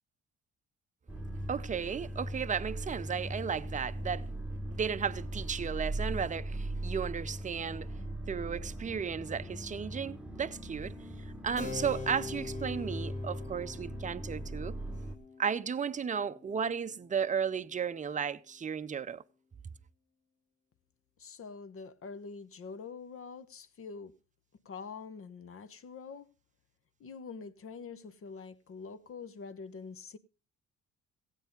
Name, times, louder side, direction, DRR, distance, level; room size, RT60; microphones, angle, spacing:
sound 1, 1.1-15.2, right 1 dB, 5° right, 1.2 m, -39 dB
voice 1, 1.5-4.3 4.7-7.9 8.3-11.0 11.4-14.8 15.4-19.2, right 7 dB, 25° right, 0.6 m, -34 dB
Keyboard (musical), 11.6-17.7, left 4 dB, 25° left, 1.8 m, -44 dB
voice 2, 21.2-24.1 24.6-26.3 27.0-30.2, left 5 dB, 45° left, 0.9 m, -45 dB
15.5 x 8.3 x 5.2 m
cardioid pair, 90°, 30 cm